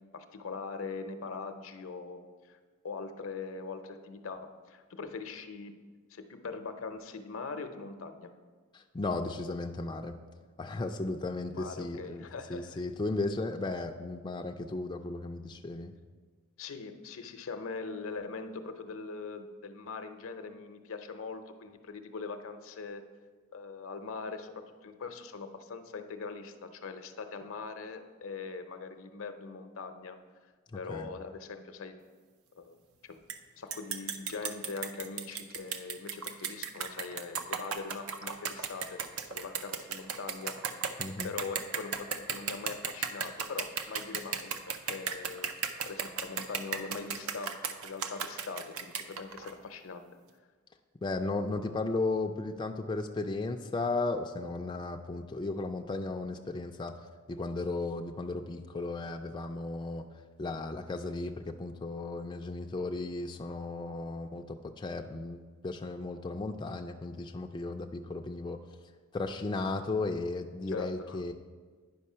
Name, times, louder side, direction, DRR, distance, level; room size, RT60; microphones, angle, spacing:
voice 1, 0.1-2.2 2.5-2.6 2.8-5.8 6.1-8.3 11.5-12.8 16.6-23.0 23.5-30.2 30.8-31.9 32.6-32.8 33.0-33.2 33.6-39.0 39.3-41.0 41.2-45.6 45.9-47.6 47.8-50.0 70.7-71.2, left 4 dB, 70° left, 8 dB, 0.6 m, -41 dB
voice 2, 8.7-10.2 10.6-15.9 30.7-31.1 41.0-41.3 51.0-56.9 57.3-60.0 60.4-68.6 69.1-71.3, left 3 dB, 20° left, 4 dB, 0.3 m, -35 dB
sound 1, 33.3-33.4 33.7-49.5, right 7 dB, 85° right, 0.6 m, -35 dB
9.5 x 5.3 x 5.5 m, 1.5 s
head